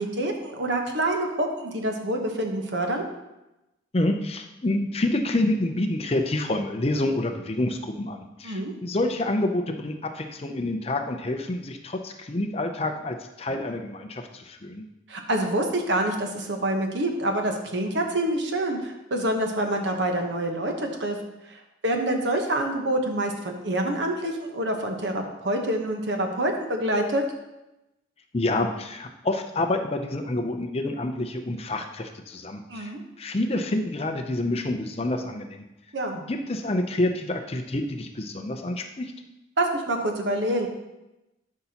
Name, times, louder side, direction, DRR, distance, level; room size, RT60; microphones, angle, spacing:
voice 1, 0.0-3.0 8.4-8.7 15.1-21.2 21.5-27.2 32.7-33.0 35.9-36.2 39.6-40.7, right 1 dB, 60° right, 3 dB, 1.0 m, -26 dB
voice 2, 3.9-14.8 28.3-32.9 33.2-35.6 36.1-39.1, left 1 dB, 30° left, 5 dB, 0.5 m, -28 dB
12.0 x 5.6 x 2.9 m, 0.97 s
head